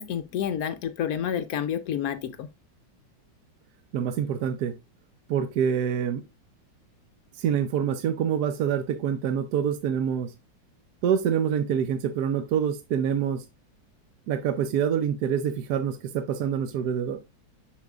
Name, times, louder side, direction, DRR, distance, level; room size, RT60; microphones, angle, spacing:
voice 1, 0.0-2.5, left 9 dB, 70° left, 0.9 m, -29 dB
voice 2, 3.9-4.7 5.3-6.2 7.3-10.3 11.0-13.4 14.3-17.2, right 8 dB, 65° right, 1.1 m, -26 dB
7.1 x 6.4 x 2.4 m
omnidirectional pair, 2.0 m